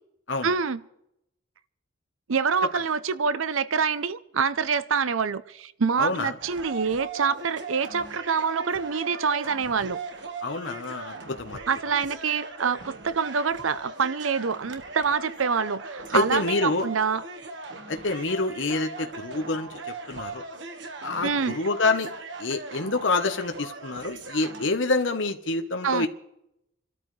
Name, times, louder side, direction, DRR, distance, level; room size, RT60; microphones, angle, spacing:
voice 1, 0.4-0.8 2.3-10.0 11.7-17.2 21.2-21.5 25.8-26.1, right 5 dB, 80° right, 0.7 m, -26 dB
voice 2, 6.0-6.3 10.4-11.6 16.1-16.9 17.9-20.4 21.0-22.1 22.4-26.1, left 3 dB, 65° left, 1.1 m, -27 dB
sound 1, 6.4-24.7, right 3 dB, 60° right, 1.6 m, -39 dB
27.5 x 13.0 x 3.3 m
head